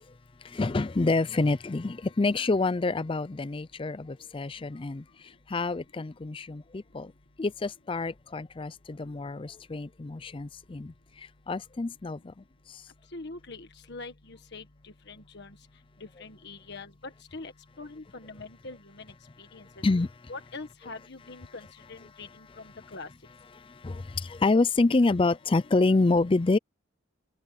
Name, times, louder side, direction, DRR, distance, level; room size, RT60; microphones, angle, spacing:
voice 1, 0.4-5.0 5.5-7.1 7.4-12.3 12.7-12.8 19.8-20.1 23.6-26.6, left 3 dB, 25° left, 0.4 m, -27 dB
voice 2, 13.1-15.6 16.0-17.5 17.8-19.1 19.4-19.7 20.3-23.1, left 3 dB, 55° left, 1.6 m, -43 dB
open air
head